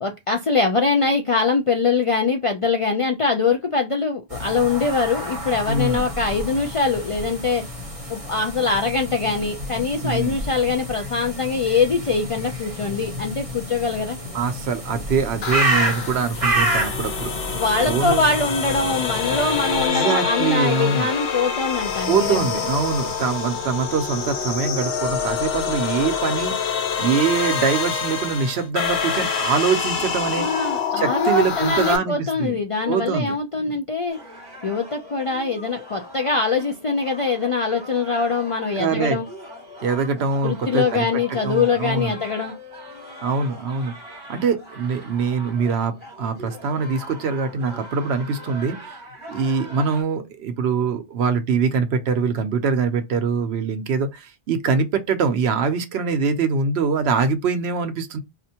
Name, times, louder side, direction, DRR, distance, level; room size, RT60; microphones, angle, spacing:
voice 1, 0.0-7.6 8.1-14.2 17.5-22.5 30.4-34.2 34.6-39.3 40.4-42.5, left 4 dB, 55° left, 0.3 m, -23 dB
sound 1, 4.3-19.9, right 1 dB, 35° right, 1.0 m, -29 dB
voice 2, 5.7-6.1 10.0-10.4 14.3-17.3 17.8-18.2 19.7-21.1 22.1-30.5 30.9-32.6 32.9-33.4 33.6-33.8 38.8-39.2 39.8-42.2 43.2-43.9 44.3-49.0 49.3-58.2, right 5 dB, 75° right, 0.9 m, -23 dB
sound 2, 15.4-32.0, left 6 dB, 75° left, 1.0 m, -26 dB
sound 3, 34.1-50.0, equal, 30° left, 2.7 m, -41 dB
4.2 x 2.5 x 2.8 m
omnidirectional pair, 1.1 m